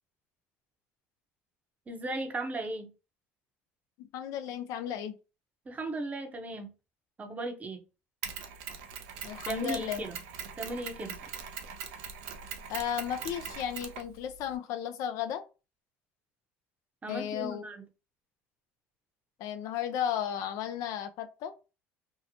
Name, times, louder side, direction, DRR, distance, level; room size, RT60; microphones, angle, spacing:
voice 1, 1.9-2.9 5.7-6.7 7.2-7.8 9.5-10.2 10.6-11.2 17.0-17.8, right 2 dB, 25° right, 0.7 m, -36 dB
voice 2, 4.0-5.2 9.2-10.0 12.7-15.4 17.1-17.7 19.4-21.5, left 9 dB, 65° left, 0.4 m, -34 dB
Mechanisms, 8.2-14.6, right 7 dB, 80° right, 0.5 m, -41 dB
2.7 x 2.0 x 2.7 m
supercardioid pair, 85°, 6 cm